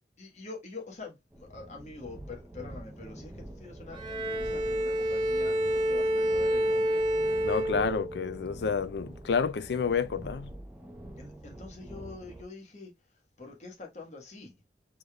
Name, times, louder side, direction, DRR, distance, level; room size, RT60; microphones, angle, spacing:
voice 1, 0.2-7.0 11.2-12.9 13.4-14.5, left 3 dB, 40° left, 1.3 m, -45 dB
sound 1, 1.3-12.4, right 1 dB, 10° right, 0.7 m, -45 dB
Bowed string instrument, 3.9-8.4, equal, 30° right, 1.1 m, -28 dB
voice 2, 7.4-10.5, left 5 dB, 70° left, 0.4 m, -29 dB
5.0 x 3.9 x 2.2 m
head